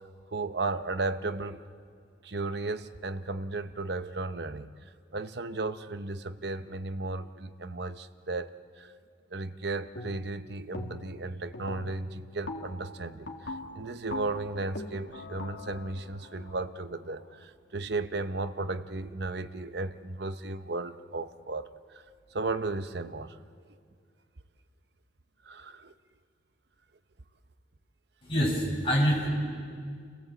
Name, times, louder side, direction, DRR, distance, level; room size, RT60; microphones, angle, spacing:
voice 1, 0.3-1.6 2.2-8.9 9.3-22.0 22.3-23.4 25.4-25.9, right 3 dB, 60° right, 11 dB, 0.8 m, -35 dB
sound 1, 10.0-10.4 10.7-11.2 11.5-17.4, left 2 dB, 75° left, 2.2 m, -42 dB
voice 2, 28.2-29.3, equal, 30° left, -4 dB, 7.2 m, -25 dB
30.0 x 16.5 x 8.0 m, 2.1 s
head